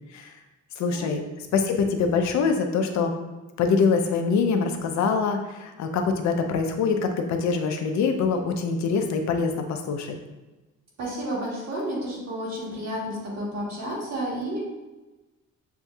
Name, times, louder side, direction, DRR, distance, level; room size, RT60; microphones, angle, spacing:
voice 1, 0.8-1.2 1.5-3.1 3.6-10.2, left 5 dB, 70° left, 4 dB, 0.6 m, -24 dB
voice 2, 11.0-14.6, equal, 60° right, -5 dB, 1.4 m, -31 dB
6.9 x 2.6 x 2.3 m, 1.1 s
cardioid pair, 165°, 29 cm